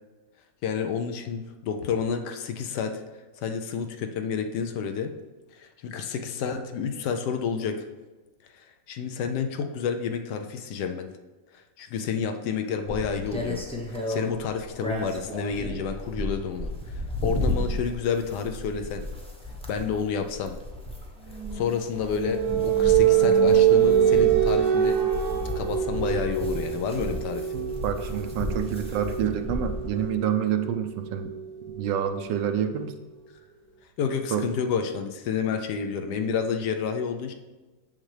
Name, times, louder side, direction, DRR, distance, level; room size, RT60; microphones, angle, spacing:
voice 1, 0.6-3.0 3.4-5.1 5.5-7.8 8.5-11.1 11.8-13.6 14.1-19.0 19.7-20.5 21.5-25.1 25.6-27.5 34.0-37.3, left 6 dB, 75° left, 6 dB, 1.2 m, -30 dB
sound 1, 12.9-30.1, left 1 dB, 5° left, 0.6 m, -34 dB
sound 2, 21.3-32.9, right 9 dB, 65° right, 1.2 m, -25 dB
voice 2, 27.5-31.3 31.7-33.0 34.3-34.5, right 9 dB, 85° right, 7 dB, 1.3 m, -28 dB
7.2 x 6.5 x 3.3 m, 1.2 s
omnidirectional pair, 1.9 m